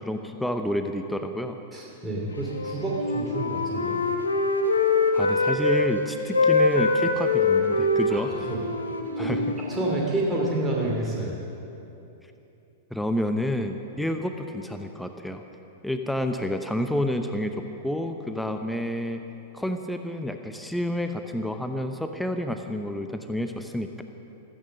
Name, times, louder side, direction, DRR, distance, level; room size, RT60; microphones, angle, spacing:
voice 1, 0.0-1.6 5.1-8.3 9.2-9.5 12.9-15.4 15.8-19.2 19.5-24.0, left 1 dB, 5° left, 6 dB, 0.8 m, -29 dB
voice 2, 1.7-4.0 8.1-8.2 8.5-8.6 9.2-9.4 9.7-11.3, right 2 dB, 15° right, -3 dB, 2.7 m, -28 dB
Wind instrument woodwind instrument, 2.5-5.9 6.2-10.1, left 3 dB, 85° left, 1.3 m, -24 dB
15.5 x 14.5 x 6.4 m, 2.9 s
figure-of-eight pair, 100°, 0 cm